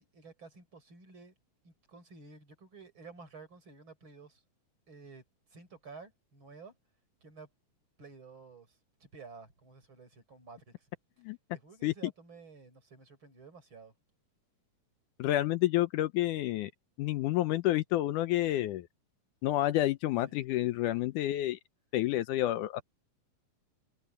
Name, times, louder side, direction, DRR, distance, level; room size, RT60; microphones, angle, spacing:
voice 1, 0.0-1.3 1.6-4.4 4.9-5.2 5.5-6.7 7.2-7.5 8.0-10.9 11.5-13.9 20.3-20.5, right 4 dB, 35° right, 5.8 m, -52 dB
voice 2, 15.2-16.7 17.0-18.9 19.4-21.6 21.9-22.8, left 15 dB, 80° left, 2.1 m, -29 dB
omnidirectional pair, 3.8 m